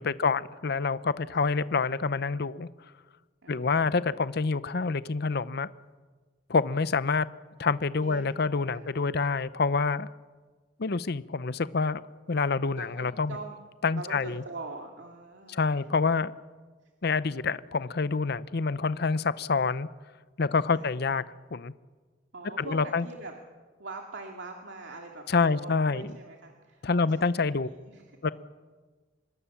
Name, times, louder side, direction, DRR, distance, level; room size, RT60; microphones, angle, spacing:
voice 1, 0.0-2.7 3.5-5.7 6.5-7.3 7.6-10.1 10.8-12.0 12.3-13.3 13.8-14.4 15.5-16.3 17.0-19.9 20.4-21.2 21.5-21.7 22.6-23.0 25.3-26.1 26.8-27.7 28.2-28.3, left 4 dB, 60° left, 16 dB, 0.7 m, -27 dB
voice 2, 3.4-4.1 8.0-8.2 8.7-9.2 12.8-13.6 13.9-15.6 20.7-20.9 22.3-23.3 23.8-28.3, right 3 dB, 80° right, 2 dB, 2.4 m, -43 dB
26.0 x 21.0 x 7.1 m, 1.4 s
head